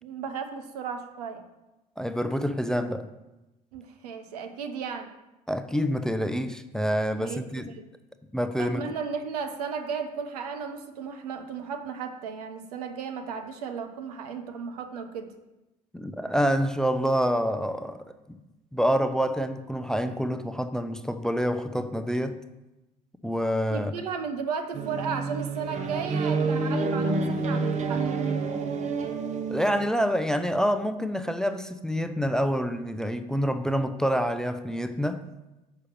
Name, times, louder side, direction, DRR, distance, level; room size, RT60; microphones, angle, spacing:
voice 1, 0.0-1.5 3.7-5.1 7.2-7.9 8.6-15.4 23.7-28.1, right 6 dB, 70° right, 0.8 m, -35 dB
voice 2, 2.0-3.1 5.5-7.7 8.3-8.8 15.9-18.4 18.7-22.4 23.2-23.9 29.5-35.2, equal, 5° left, 0.5 m, -27 dB
sound 1, 24.7-29.9, right 4 dB, 35° right, 1.0 m, -28 dB
6.3 x 5.5 x 6.5 m
figure-of-eight pair, 55°, 20 cm